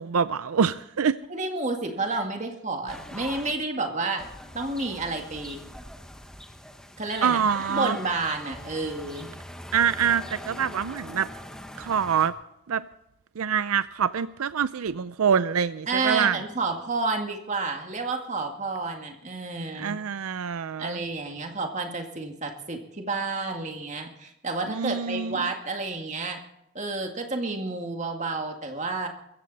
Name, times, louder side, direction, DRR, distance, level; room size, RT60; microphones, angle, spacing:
voice 1, 0.0-1.2 7.2-8.0 9.7-11.3 11.8-12.4 12.7-12.9 13.4-16.4 19.8-21.0 24.7-25.5, right 7 dB, 85° right, 14 dB, 0.5 m, -25 dB
voice 2, 1.3-4.2 4.5-5.6 7.0-7.4 7.7-9.3 15.9-20.0 20.8-26.4 26.7-29.1, right 3 dB, 35° right, 3 dB, 2.0 m, -30 dB
sound 1, 2.9-3.5 4.2-12.3, equal, 5° left, 1.1 m, -42 dB
21.5 x 15.0 x 4.2 m, 0.83 s
head